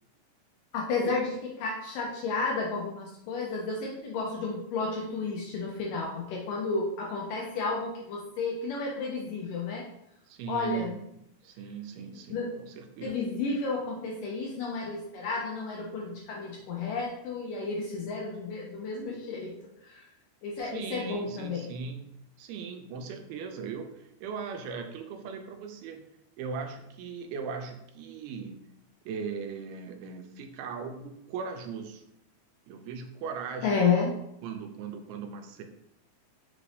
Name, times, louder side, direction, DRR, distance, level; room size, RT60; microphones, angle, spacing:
voice 1, 0.7-1.3 1.6-9.8 10.5-10.9 12.3-12.5 13.0-19.5 19.9-20.0 20.4-21.6 33.6-34.1, left 4 dB, 80° left, -2 dB, 1.9 m, -31 dB
voice 2, 10.3-11.0 11.4-13.3 20.6-26.1 26.4-28.7 29.1-32.1 32.7-33.9 34.4-35.6, right 6 dB, 85° right, 4 dB, 2.5 m, -39 dB
5.9 x 2.6 x 3.2 m, 0.78 s
omnidirectional pair, 4.3 m